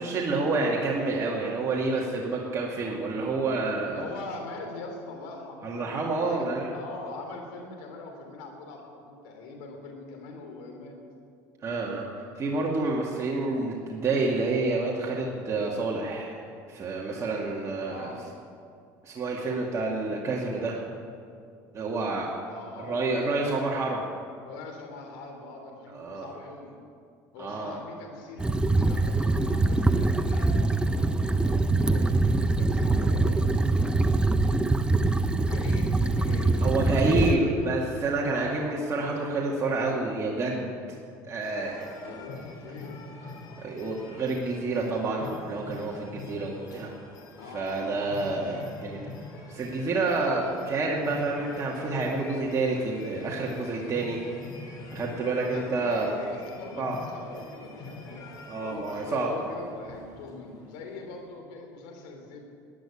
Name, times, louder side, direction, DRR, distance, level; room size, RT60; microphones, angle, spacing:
voice 1, 0.0-4.1 5.6-6.7 11.6-18.1 19.0-20.8 21.7-22.3 22.8-24.0 25.9-26.3 27.4-27.8 32.0-32.2 36.6-40.7 41.3-41.9 43.6-46.9 47.5-49.0 49.5-54.2 54.9-56.1 56.8-57.0 58.4-59.3, right 3 dB, 35° right, -3 dB, 2.2 m, -28 dB
voice 2, 3.9-11.0 17.8-18.2 22.4-23.9 24.4-26.7 27.3-34.1 35.3-37.8 38.2-38.7 41.6-43.0 47.4-48.1 55.5-62.4, left 3 dB, 80° left, 3 dB, 3.0 m, -42 dB
sound 1, 28.4-37.4, right 2 dB, 10° right, 0.7 m, -24 dB
sound 2, 41.4-61.1, left 2 dB, 50° left, 3.6 m, -45 dB
12.0 x 10.5 x 8.7 m, 2.3 s
supercardioid pair, 95°, 9 cm